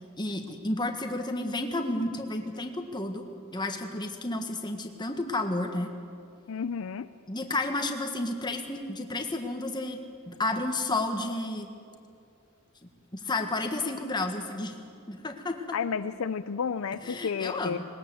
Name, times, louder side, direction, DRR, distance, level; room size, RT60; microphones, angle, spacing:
voice 1, 0.2-3.2 3.5-5.9 7.3-10.0 10.3-11.7 12.8-14.8 15.1-15.6 17.0-17.9, left 2 dB, 20° left, 5 dB, 1.6 m, -31 dB
voice 2, 6.5-7.1 15.7-17.8, left 6 dB, 65° left, 12 dB, 0.5 m, -31 dB
20.0 x 19.5 x 7.8 m, 2.4 s
head